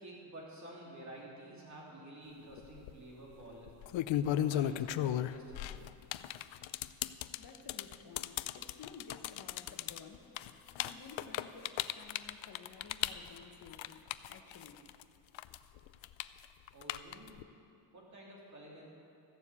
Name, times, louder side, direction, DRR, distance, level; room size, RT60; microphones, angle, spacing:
voice 1, 0.0-3.7 4.3-5.8 16.7-17.3 17.9-18.8, right 1 dB, 35° right, -4 dB, 3.0 m, -50 dB
sound 1, 2.6-2.9 3.7-15.0 15.3-17.4, left 12 dB, 75° left, 0.5 m, -36 dB
voice 2, 7.4-10.4 10.8-14.8, left 5 dB, 50° left, 4 dB, 1.2 m, -54 dB
14.5 x 7.2 x 8.2 m, 2.7 s
wide cardioid pair, 160°, 46 cm